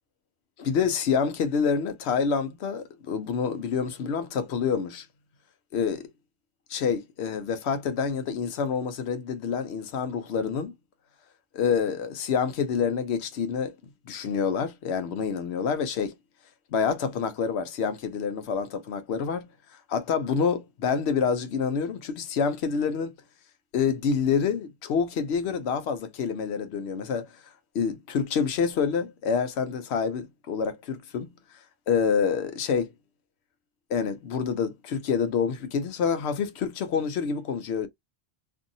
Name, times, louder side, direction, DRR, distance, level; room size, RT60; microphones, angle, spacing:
voice 1, 0.6-5.1 5.7-6.1 6.7-10.7 11.5-13.7 14.1-16.1 16.7-19.5 19.9-23.2 23.7-27.3 27.7-31.3 31.9-32.9 33.9-37.9, left 6 dB, 75° left, 0.9 m, -27 dB
2.6 x 2.6 x 2.6 m
omnidirectional pair, 1.1 m